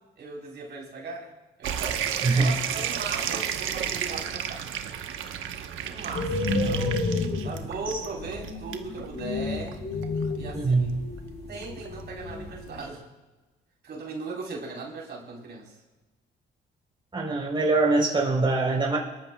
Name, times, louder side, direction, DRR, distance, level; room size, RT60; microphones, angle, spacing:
voice 1, 0.2-1.3 1.6-2.0 2.3-4.6 5.8-7.1 7.4-9.8 10.4-10.9 11.5-13.0 13.8-15.7, right 3 dB, 60° right, -2 dB, 4.1 m, -38 dB
sound 1, 1.6-12.9, right 9 dB, 80° right, 1.1 m, -34 dB
voice 2, 2.2-2.5 10.5-11.0 17.1-19.0, right 3 dB, 25° right, -2 dB, 3.8 m, -23 dB
sound 2, 6.1-12.8, left 3 dB, 60° left, 5.6 m, -31 dB
25.5 x 13.0 x 2.3 m, 1.2 s
cardioid pair, 90°, 20 cm